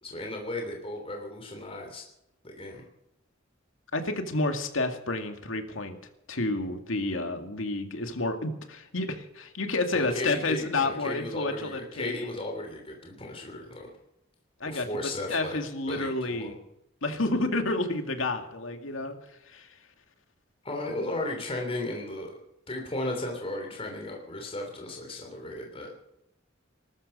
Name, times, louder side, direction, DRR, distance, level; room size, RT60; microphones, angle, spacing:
voice 1, 0.0-2.0 2.4-2.8 9.9-13.9 14.6-15.6 15.9-16.5 20.6-22.4 22.7-25.9, left 1 dB, 30° left, 1 dB, 3.2 m, -35 dB
voice 2, 3.9-6.0 6.3-12.3 14.6-16.6 17.0-19.2 19.5-19.8, left 2 dB, 85° left, 6 dB, 2.2 m, -30 dB
19.5 x 13.0 x 5.5 m, 0.84 s
head